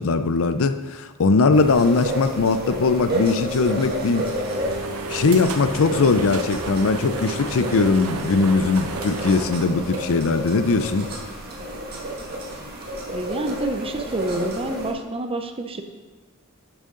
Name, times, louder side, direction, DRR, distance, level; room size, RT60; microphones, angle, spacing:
voice 1, 0.0-4.3 5.1-11.1, left 4 dB, 65° left, 10 dB, 0.5 m, -20 dB
sound 1, 1.5-14.9, equal, 45° right, 1.6 m, -31 dB
sound 2, 3.4-10.7, right 2 dB, 70° right, 0.7 m, -33 dB
voice 2, 13.1-15.8, right 2 dB, 25° right, 6 dB, 0.6 m, -28 dB
10.5 x 6.5 x 3.8 m, 1.3 s
head